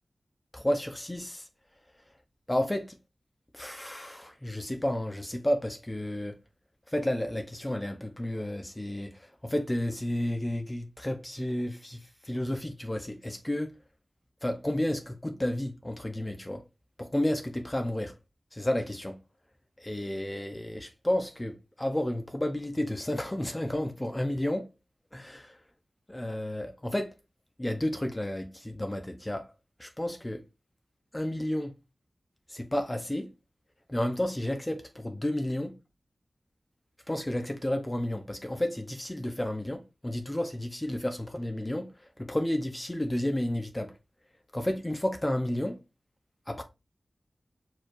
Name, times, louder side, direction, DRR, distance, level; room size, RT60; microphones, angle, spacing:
voice 1, 0.5-1.5 2.5-3.0 3.5-6.4 6.9-13.7 14.4-16.6 17.0-18.1 18.5-19.2 19.8-24.7 25.1-25.6 26.1-27.1 27.6-29.5 29.8-30.4 31.1-31.7 32.5-33.3 33.9-35.7 37.1-41.9 42.2-43.9 44.5-45.8 46.5-46.6, left 1 dB, 20° left, 0.7 m, -31 dB
4.5 x 4.4 x 2.5 m
cardioid pair, 45°, 0 cm